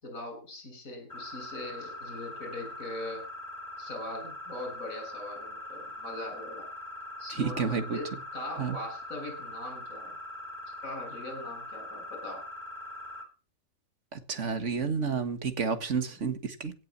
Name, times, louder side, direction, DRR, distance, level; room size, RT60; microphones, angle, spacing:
voice 1, 0.0-3.2 3.8-6.7 7.2-10.1 10.8-12.4 16.0-16.2, left 1 dB, 75° left, 7.3 m, -41 dB
sound 1, 1.1-13.2, left 1 dB, 30° left, 5.4 m, -42 dB
voice 2, 7.3-8.0 8.6-8.8 14.1-16.7, right 5 dB, 60° right, 2.0 m, -30 dB
16.5 x 7.4 x 7.4 m
omnidirectional pair, 1.4 m